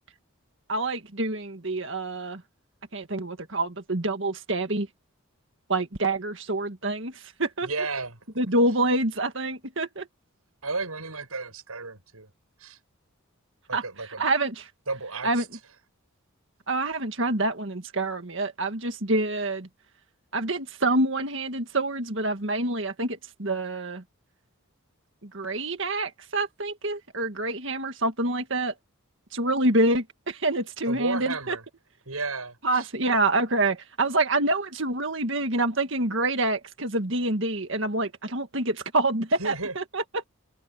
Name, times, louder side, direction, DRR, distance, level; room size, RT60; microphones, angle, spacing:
voice 1, 0.7-2.4 2.9-4.9 5.7-7.7 8.4-10.1 13.7-13.8 14.2-14.7 15.2-15.4 16.7-19.7 20.3-24.0 25.2-28.7 29.3-31.6 32.6-40.3, right 2 dB, 55° right, 1.9 m, -27 dB
voice 2, 7.6-8.2 10.6-12.3 12.6-12.8 13.7-14.2 14.9-15.5 30.9-31.6 32.1-32.9 39.4-39.7, right 3 dB, 85° right, 7.3 m, -33 dB
head